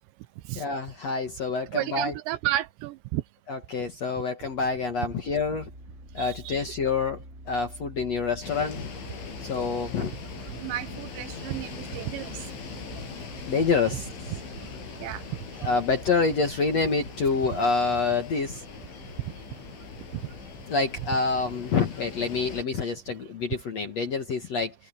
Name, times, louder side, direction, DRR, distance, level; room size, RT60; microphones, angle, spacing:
voice 1, 0.6-2.1 3.5-5.7 6.1-8.9 9.4-10.1 13.5-14.1 15.6-18.6 20.7-24.7, left 4 dB, 55° left, 2.0 m, -27 dB
voice 2, 1.7-3.2 6.2-6.6 10.6-12.3 12.9-13.0 15.0-15.2, right 15 dB, 80° right, 2.9 m, -32 dB
sound 1, 4.4-20.6, right 1 dB, 15° right, 6.1 m, -49 dB
sound 2, 8.4-22.6, left 5 dB, 85° left, 8.6 m, -41 dB
open air
omnidirectional pair, 5.4 m